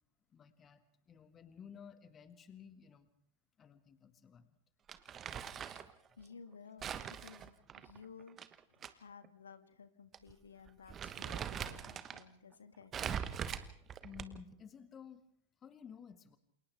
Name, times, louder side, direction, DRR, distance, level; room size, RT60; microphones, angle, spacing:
voice 1, 0.3-3.1 3.6-4.6 14.0-15.2 15.6-16.4, left 7 dB, 25° left, 11 dB, 1.7 m, -54 dB
Crumpling crinkling, 4.9-5.9 6.8-8.9 9.2-9.3 10.1-10.3 10.7-12.2 12.9-14.5, right 8 dB, 25° right, 1.2 m, -42 dB
voice 2, 5.8-8.4 8.7-12.9, left 6 dB, 70° left, 10 dB, 1.6 m, -56 dB
28.5 x 28.0 x 3.5 m, 0.65 s
figure-of-eight pair, 90°, 0 cm